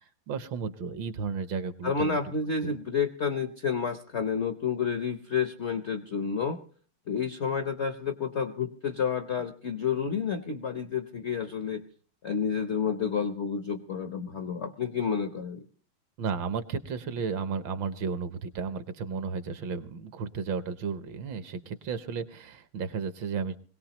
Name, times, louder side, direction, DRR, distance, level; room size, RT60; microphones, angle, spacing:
voice 1, 0.3-2.2 2.6-2.7 16.2-23.6, right 5 dB, 70° right, 11 dB, 1.5 m, -33 dB
voice 2, 1.8-6.6 7.1-11.8 12.2-15.6, left 6 dB, 60° left, 7 dB, 0.7 m, -30 dB
21.5 x 17.5 x 2.9 m, 0.42 s
omnidirectional pair, 2.3 m